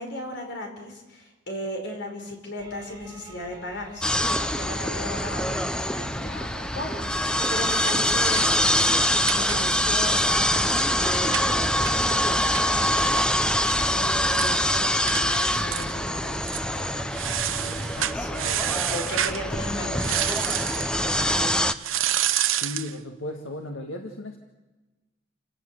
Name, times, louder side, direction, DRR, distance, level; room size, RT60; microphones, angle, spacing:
voice 1, 0.0-8.7 9.3-21.6, left 1 dB, 60° left, 3 dB, 5.3 m, -37 dB
sound 1, 2.6-21.7, right 2 dB, 20° right, 3.9 m, -48 dB
sound 2, 4.0-21.7, left 1 dB, 5° left, 0.7 m, -24 dB
sound 3, 7.3-10.0 10.3-10.4 10.6-13.7 14.0-14.1 14.3-14.6 15.1-15.3 15.7-16.1 16.4-16.7 17.1-19.4 20.0-20.9 21.8-22.9, right 11 dB, 85° right, 0.9 m, -29 dB
voice 2, 22.6-24.4, left 1 dB, 80° left, 4 dB, 1.9 m, -35 dB
29.0 x 17.5 x 7.9 m, 1.1 s
head